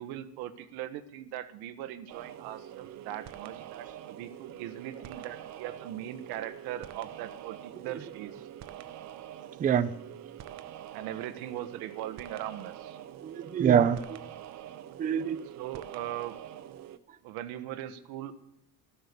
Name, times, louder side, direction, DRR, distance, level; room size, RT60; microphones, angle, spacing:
voice 1, 0.0-8.4 10.9-13.0 15.6-16.4 17.2-18.3, right 12 dB, 90° right, 10 dB, 1.4 m, -40 dB
sound 1, 2.1-17.0, right 11 dB, 45° right, 0.9 m, -45 dB
voice 2, 9.6-9.9 13.2-14.2 15.0-15.4, right 8 dB, 25° right, 15 dB, 0.5 m, -25 dB
14.0 x 13.5 x 6.8 m, 0.80 s
cardioid pair, 170°, 37 cm